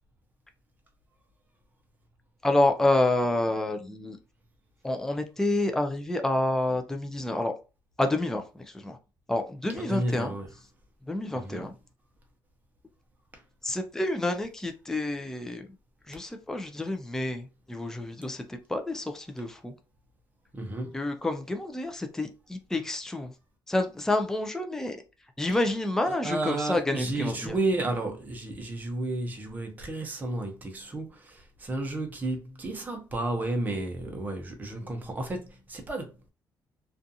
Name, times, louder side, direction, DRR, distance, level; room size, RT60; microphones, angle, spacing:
voice 1, 2.4-4.2 4.8-7.5 8.0-8.4 8.7-9.0 9.3-10.3 11.1-11.7 13.6-15.7 16.1-19.7 20.9-23.3 23.7-25.0 25.4-27.6, left 2 dB, 5° left, 0.4 m, -28 dB
voice 2, 9.7-10.5 11.3-11.7 13.3-13.4 20.5-21.0 26.1-36.1, right 2 dB, 20° right, 0.7 m, -32 dB
2.4 x 2.4 x 2.7 m
cardioid pair, 125°, 8 cm